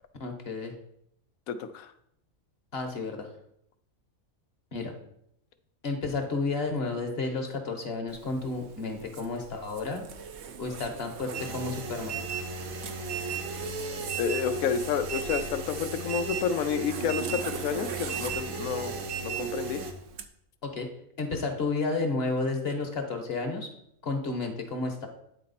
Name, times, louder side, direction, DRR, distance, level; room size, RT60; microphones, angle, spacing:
voice 1, 0.2-0.7 2.7-3.3 4.7-5.0 5.8-10.0 10.6-12.2 20.6-20.9 21.2-23.7 24.0-25.1, left 3 dB, 50° left, 4 dB, 1.2 m, -31 dB
voice 2, 1.5-1.9 14.2-18.9 19.2-19.8, left 7 dB, 85° left, 10 dB, 1.1 m, -30 dB
Zipper (clothing), 8.1-20.3, right 7 dB, 65° right, 0.8 m, -44 dB
sound 1, 11.3-19.9, right 4 dB, 85° right, 1.3 m, -35 dB
9.4 x 4.2 x 4.1 m, 0.72 s
omnidirectional pair, 1.4 m